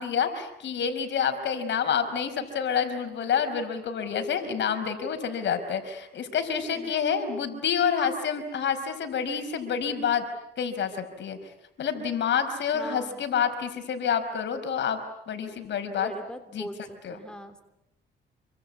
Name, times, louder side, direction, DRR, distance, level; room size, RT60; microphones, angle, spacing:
voice 1, 0.0-10.3 10.6-11.4 11.8-15.0 15.3-16.1 16.5-16.7 17.0-17.2, left 7 dB, 65° left, 8 dB, 5.0 m, -28 dB
voice 2, 12.7-13.2 15.8-17.6, equal, 5° left, 7 dB, 3.3 m, -40 dB
27.5 x 25.0 x 8.6 m, 0.79 s
cardioid pair, 90°, 20 cm